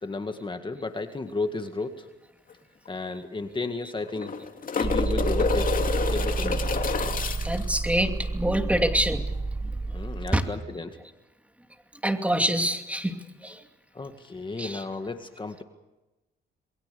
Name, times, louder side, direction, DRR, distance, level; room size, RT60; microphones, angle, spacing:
voice 1, 0.0-2.1 2.9-4.3 4.8-5.7 6.1-6.5 9.9-11.0 13.9-15.6, left 3 dB, 25° left, 7 dB, 2.0 m, -33 dB
sound 1, 2.5-2.6 2.9-3.0 4.0-7.7 10.3-10.4, left 5 dB, 45° left, 2.7 m, -29 dB
sound 2, 4.8-10.3, right 3 dB, 25° right, 1.2 m, -29 dB
voice 2, 7.4-9.2 9.6-10.0 10.3-10.4 12.0-13.6 14.6-14.9, right 1 dB, 5° right, 6 dB, 2.7 m, -26 dB
28.0 x 22.0 x 7.0 m, 1.0 s
cardioid pair, 90°, 20 cm